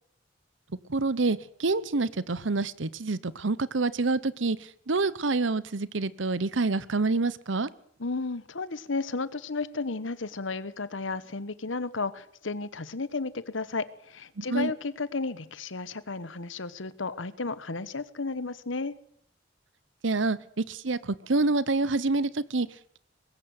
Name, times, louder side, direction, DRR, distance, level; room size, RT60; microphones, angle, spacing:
voice 1, 0.9-4.6 4.9-7.7 14.4-14.7 20.0-22.7, right 3 dB, 75° right, 18 dB, 0.9 m, -27 dB
voice 2, 8.0-18.9, left 3 dB, 80° left, 16 dB, 1.2 m, -33 dB
20.5 x 17.0 x 7.9 m, 0.65 s
head